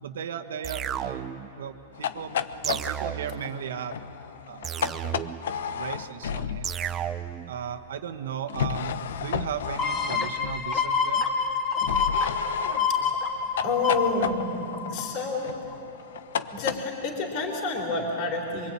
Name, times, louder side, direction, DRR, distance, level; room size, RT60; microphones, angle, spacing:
voice 1, 0.0-1.3 1.6-4.0 4.5-4.8 5.7-6.7 7.5-11.2, right 8 dB, 85° right, 6 dB, 1.5 m, -36 dB
sound 1, 0.6-1.5 2.6-3.5 4.6-5.5 6.6-7.5, right 9 dB, 20° right, 0.7 m, -33 dB
sound 2, 1.9-6.9 8.5-10.8 11.8-16.8, left 8 dB, 80° left, 0.9 m, -33 dB
sound 3, 9.8-15.3 15.7-15.8, left 5 dB, 20° left, 2.1 m, -27 dB
voice 2, 13.6-15.6 16.5-18.7, left 3 dB, 40° left, 0 dB, 3.7 m, -29 dB
24.5 x 23.5 x 8.8 m, 2.8 s
supercardioid pair, 160°, 0 cm